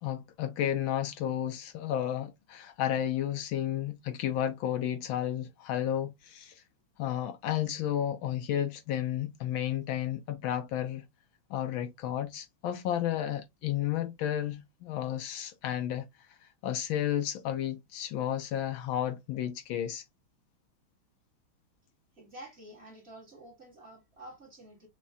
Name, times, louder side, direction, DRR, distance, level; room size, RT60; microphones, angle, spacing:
voice 1, 0.0-6.6 7.0-11.0 11.5-16.1 16.6-20.0, left 11 dB, 75° left, 1.3 m, -32 dB
voice 2, 22.1-24.9, right 1 dB, 35° right, 1.4 m, -49 dB
6.0 x 2.2 x 2.6 m
omnidirectional pair, 2.3 m